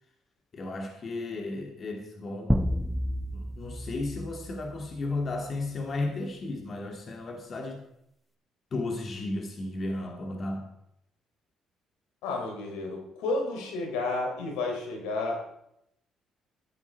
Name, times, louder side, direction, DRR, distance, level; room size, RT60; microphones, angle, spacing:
voice 1, 0.5-2.5 3.3-7.8 8.7-10.7, left 2 dB, 45° left, 3 dB, 2.4 m, -34 dB
sound 1, 2.5-5.3, equal, ahead, 0.9 m, -31 dB
voice 2, 12.2-15.4, left 2 dB, 90° left, 2 dB, 3.7 m, -31 dB
14.0 x 10.0 x 4.6 m, 0.79 s
supercardioid pair, 75°, 0 cm